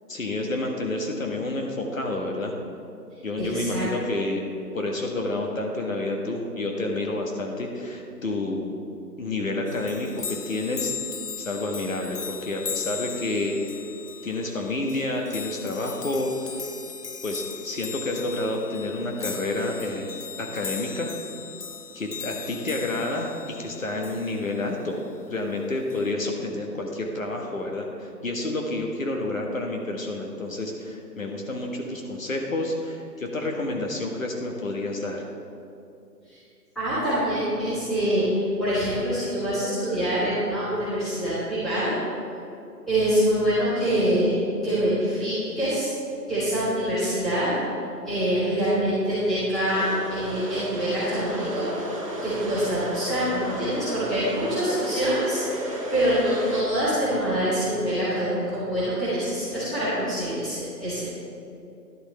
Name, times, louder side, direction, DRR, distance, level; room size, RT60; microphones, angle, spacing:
voice 1, 0.1-2.5 3.2-4.5 4.7-8.8 9.2-10.9 11.4-13.6 14.2-16.6 17.2-21.1 21.9-25.0 25.3-35.2, left 2 dB, 50° left, 1 dB, 1.4 m, -29 dB
voice 2, 3.4-3.9 36.3-36.4 36.7-41.9 42.9-45.9 46.3-47.5 48.0-51.7 52.2-55.4 55.9-61.2, equal, ahead, -16 dB, 1.4 m, -25 dB
sound 1, 9.7-24.7 25.9-26.1, left 6 dB, 70° left, 0.8 m, -38 dB
sound 2, 49.6-56.6, right 1 dB, 20° right, 0.9 m, -33 dB
11.5 x 11.0 x 3.3 m, 2.7 s
figure-of-eight pair, 155°, 50 cm